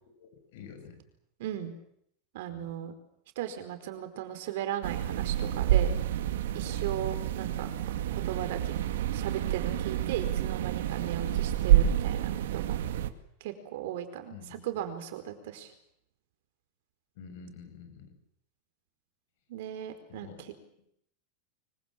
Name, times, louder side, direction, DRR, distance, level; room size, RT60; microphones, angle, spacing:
voice 1, 0.2-1.0 2.5-2.7 6.6-6.9 14.3-14.6 17.2-18.1 20.1-20.6, left 6 dB, 55° left, 8 dB, 6.9 m, -48 dB
voice 2, 1.4-1.7 2.3-2.9 3.4-5.9 6.5-7.7 8.1-8.8 9.1-12.8 13.4-15.7 19.5-20.5, right 11 dB, 55° right, 8 dB, 4.6 m, -37 dB
sound 1, 4.8-13.1, right 11 dB, 85° right, 2.2 m, -28 dB
25.0 x 24.5 x 7.6 m, 0.72 s
supercardioid pair, 175°, 0 cm